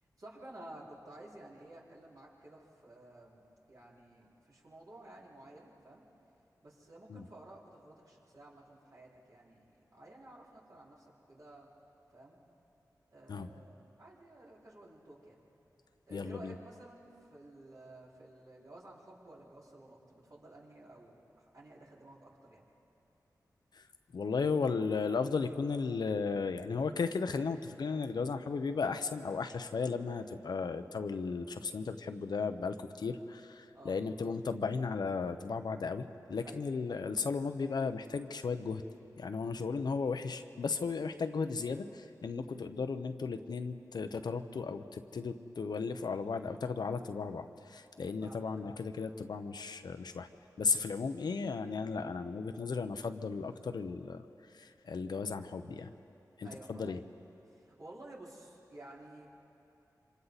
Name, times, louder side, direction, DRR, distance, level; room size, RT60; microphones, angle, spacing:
voice 1, 0.2-3.4 3.7-6.0 6.6-11.7 12.1-12.4 13.1-15.4 16.1-22.6 33.7-33.9 36.4-36.6 48.2-48.5 56.4-56.9 57.5-59.3, right 1 dB, 55° right, -6 dB, 4.9 m, -53 dB
voice 2, 16.1-16.6 23.7-23.9 24.1-38.8 39.2-50.3 50.6-55.9 56.4-57.0, left 4 dB, 75° left, 8 dB, 0.9 m, -35 dB
27.0 x 25.5 x 4.2 m, 2.8 s
cardioid pair, 55°, 7 cm